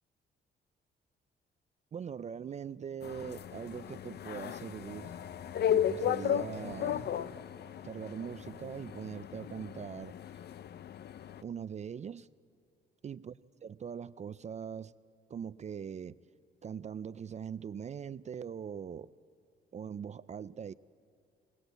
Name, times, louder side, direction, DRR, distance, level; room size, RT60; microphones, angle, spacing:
voice 1, 1.9-5.1 5.7-7.1 7.8-10.2 11.4-12.3 13.0-13.3 13.6-14.9 15.3-16.2 16.6-19.1 19.7-20.7, right 7 dB, 35° right, 0.4 m, -41 dB
sound 1, 3.0-11.4, left 9 dB, 55° left, 0.6 m, -35 dB
21.0 x 18.5 x 8.1 m
cardioid pair, 90°, 20 cm